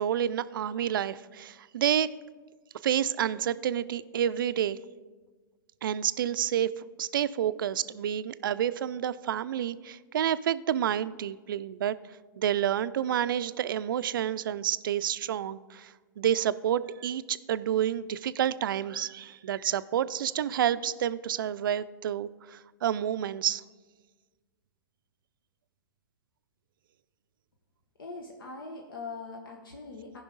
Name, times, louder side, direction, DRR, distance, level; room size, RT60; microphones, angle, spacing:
voice 1, 0.0-2.1 2.8-4.8 5.8-6.7 7.0-12.0 12.4-23.6, right 10 dB, 75° right, 15 dB, 0.4 m, -29 dB
voice 2, 28.0-30.2, left 3 dB, 85° left, 1 dB, 1.0 m, -41 dB
14.5 x 5.6 x 3.9 m, 1.4 s
hypercardioid pair, 115°, 11 cm